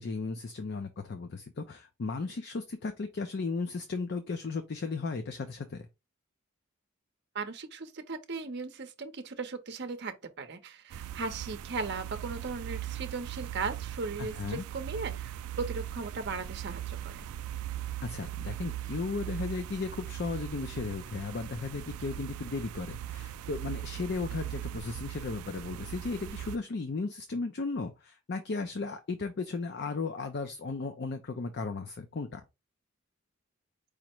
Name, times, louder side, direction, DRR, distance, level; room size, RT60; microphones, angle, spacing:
voice 1, 0.0-5.8 14.2-14.6 18.0-32.4, left 4 dB, 50° left, 0.5 m, -35 dB
voice 2, 7.3-17.3, right 4 dB, 50° right, 0.7 m, -37 dB
sound 1, 10.9-26.6, right 12 dB, 90° right, 0.3 m, -39 dB
5.0 x 2.1 x 4.4 m
head